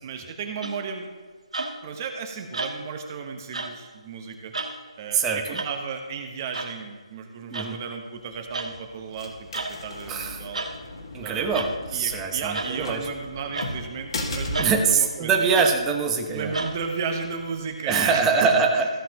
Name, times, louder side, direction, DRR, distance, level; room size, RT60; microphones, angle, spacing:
voice 1, 0.0-1.1 1.8-4.5 5.0-10.6 11.2-11.6 11.9-15.5 16.3-18.5, right 5 dB, 30° right, 4 dB, 1.1 m, -34 dB
sound 1, 0.6-0.9 1.5-1.9 2.5-3.0 3.5-3.8 4.5-4.8 5.5-5.7 6.5-6.7 7.5-7.7 8.5-8.8 9.5-9.8 10.5-10.8 11.5-11.8 12.5-12.8 13.5-13.8 14.5-14.8 15.5-15.8 16.5-16.8, right 3 dB, 85° right, 1.3 m, -31 dB
voice 2, 5.1-5.6 7.5-7.8 10.1-10.4 11.1-13.1 14.6-16.5 17.9-18.9, right 5 dB, 10° right, 2 dB, 0.9 m, -23 dB
sound 2, 8.2-17.8, left 2 dB, 55° left, 1.9 m, -38 dB
15.0 x 7.2 x 3.0 m, 1.4 s
figure-of-eight pair, 155°, 3 cm